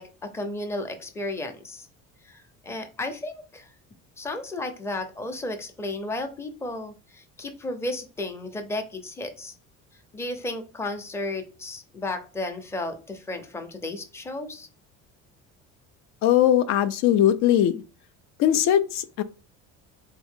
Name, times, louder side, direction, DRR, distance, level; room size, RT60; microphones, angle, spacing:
voice 1, 0.0-1.9 2.2-3.7 4.2-9.5 10.1-14.7, left 2 dB, 10° left, 0.6 m, -33 dB
voice 2, 16.2-17.8 18.4-19.2, left 11 dB, 65° left, 0.5 m, -20 dB
3.6 x 3.5 x 3.6 m
cardioid pair, 150°, 30 cm